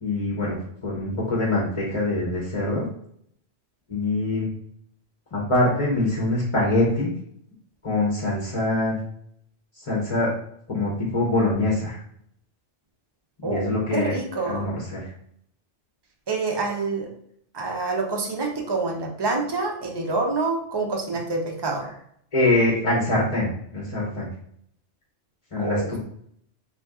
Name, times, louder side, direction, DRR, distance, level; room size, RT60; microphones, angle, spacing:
voice 1, 0.0-0.6 0.8-2.9 3.9-4.5 5.3-7.1 7.8-9.0 9.8-10.3 10.7-12.0 13.4-14.1 14.5-15.1 22.3-24.3 25.5-26.0, left 2 dB, 30° left, -4 dB, 0.8 m, -24 dB
voice 2, 13.4-14.7 16.3-17.1 17.5-21.9 25.5-26.0, right 3 dB, 25° right, 1 dB, 0.6 m, -27 dB
4.2 x 2.9 x 3.6 m, 0.67 s
omnidirectional pair, 1.2 m